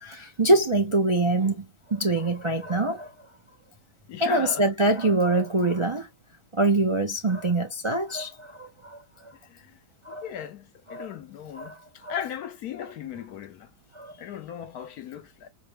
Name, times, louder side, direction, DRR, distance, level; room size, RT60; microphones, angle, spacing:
voice 1, 0.0-3.1 4.2-6.1 6.5-9.0 9.2-9.3 10.0-10.2 10.9-11.1 11.6-11.8 12.0-12.1 13.9-14.1, right 2 dB, 40° right, 0.4 m, -24 dB
voice 2, 4.1-4.7 9.4-9.8 10.1-13.7 14.2-15.5, left 9 dB, 70° left, 1.2 m, -37 dB
4.7 x 2.2 x 3.2 m
omnidirectional pair, 1.7 m